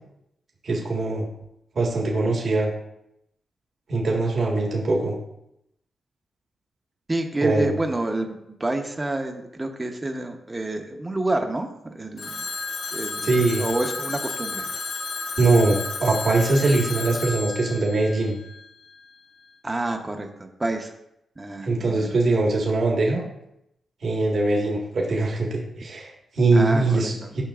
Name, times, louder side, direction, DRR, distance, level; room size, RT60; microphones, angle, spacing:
voice 1, 0.6-1.2 1.7-2.7 3.9-5.1 7.4-7.7 13.2-13.6 15.4-18.4 21.6-23.2 24.0-27.4, right 2 dB, 60° right, -2 dB, 1.6 m, -22 dB
voice 2, 7.1-12.4 12.9-14.7 19.6-20.9 21.4-22.1 26.5-27.3, right 2 dB, 25° right, 4 dB, 0.9 m, -28 dB
Telephone, 12.2-19.0, left 4 dB, 80° left, 1.4 m, -32 dB
10.0 x 5.7 x 2.5 m, 0.82 s
supercardioid pair, 50°, 0 cm